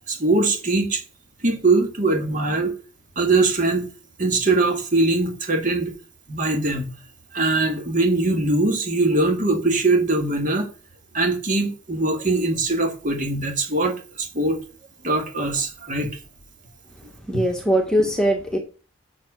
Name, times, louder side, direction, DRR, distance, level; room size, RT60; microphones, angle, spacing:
voice 1, 0.1-1.0 1.4-2.7 3.2-3.9 4.2-5.9 6.3-6.9 7.3-10.7 11.1-14.6 15.0-16.1, right 2 dB, 40° right, 2.0 m, -21 dB
voice 2, 17.3-18.6, equal, 5° left, 1.5 m, -21 dB
7.5 x 6.8 x 6.2 m
head